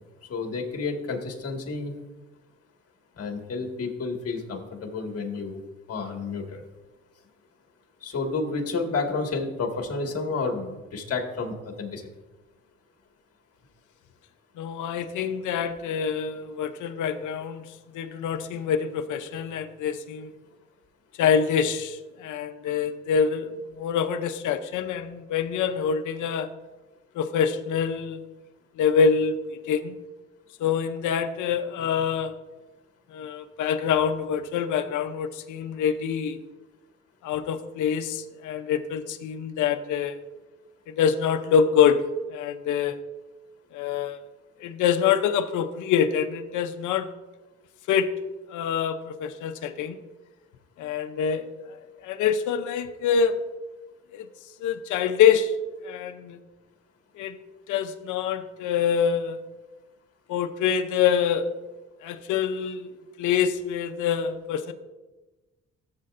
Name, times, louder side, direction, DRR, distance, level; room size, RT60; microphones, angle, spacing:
voice 1, 0.3-2.0 3.2-5.6 5.9-6.6 8.0-12.0, left 4 dB, 50° left, 2 dB, 2.0 m, -30 dB
voice 2, 14.6-17.7 17.9-20.3 21.2-26.5 27.2-28.2 28.8-29.9 30.6-32.3 33.1-36.4 37.2-40.2 41.0-43.0 43.7-44.2 44.6-47.1 47.9-48.1 48.5-50.0 50.8-51.5 52.0-53.4 54.1-54.3 54.6-55.5 55.8-56.4 57.2-57.4 57.7-59.4 60.3-61.5 62.0-62.9 63.2-64.7, left 7 dB, 85° left, 7 dB, 0.7 m, -25 dB
14.5 x 7.6 x 2.6 m, 1.1 s
cardioid pair, 90°, 30 cm